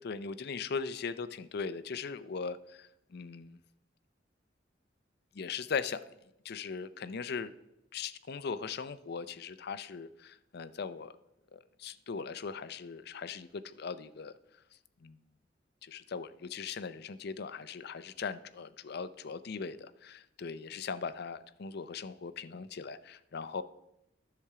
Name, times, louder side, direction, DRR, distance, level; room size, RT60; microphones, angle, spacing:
voice 1, 0.0-3.6 5.3-6.0 6.4-7.5 7.9-11.2 11.5-14.3 15.0-15.2 15.8-23.6, left 5 dB, 60° left, 13 dB, 0.5 m, -39 dB
10.5 x 6.8 x 4.8 m, 0.86 s
head